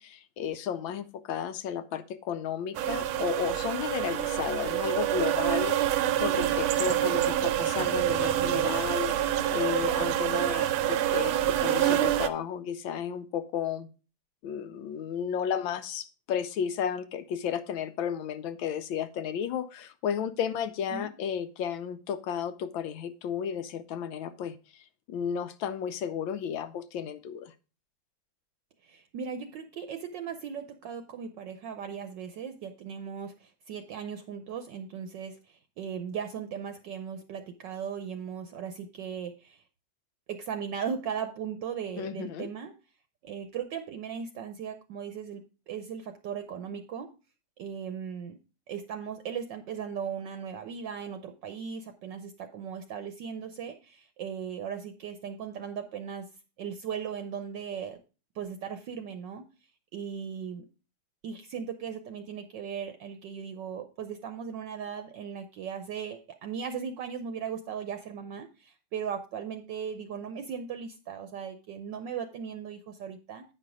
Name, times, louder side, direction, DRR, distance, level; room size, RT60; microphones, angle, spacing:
voice 1, 0.0-13.9 14.4-24.8 25.1-27.5 42.0-42.5, left 8 dB, 75° left, 12 dB, 1.3 m, -33 dB
sound 1, 2.7-12.3, right 12 dB, 85° right, 1.5 m, -27 dB
voice 2, 28.8-39.6 40.3-42.7 43.2-47.1 47.6-48.4 48.7-56.3 56.6-58.0 58.3-59.4 59.9-60.6 61.2-73.4, right 7 dB, 70° right, 8 dB, 1.2 m, -37 dB
9.0 x 5.5 x 4.8 m, 0.33 s
omnidirectional pair, 2.3 m